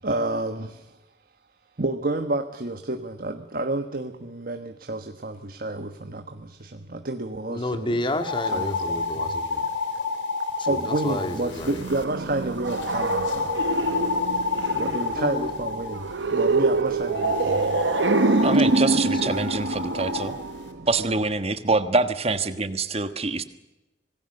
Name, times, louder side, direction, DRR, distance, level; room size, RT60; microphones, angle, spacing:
voice 1, 0.0-1.0 1.8-8.0 8.5-8.7 10.7-13.5 14.7-17.8 20.7-21.1, right 2 dB, 50° right, 6 dB, 1.3 m, -30 dB
voice 2, 7.5-9.7 10.6-11.8 15.2-15.5 19.1-19.2, left 1 dB, 25° left, 7 dB, 2.2 m, -30 dB
sound 1, 8.1-12.0 12.7-16.0 17.1-20.3, left 4 dB, 85° left, 3.3 m, -29 dB
sound 2, 11.5-21.2, right 3 dB, 80° right, 0.9 m, -25 dB
voice 3, 18.4-20.3 20.9-23.4, right 3 dB, 35° right, 10 dB, 1.4 m, -25 dB
26.0 x 19.0 x 6.6 m, 1.0 s
head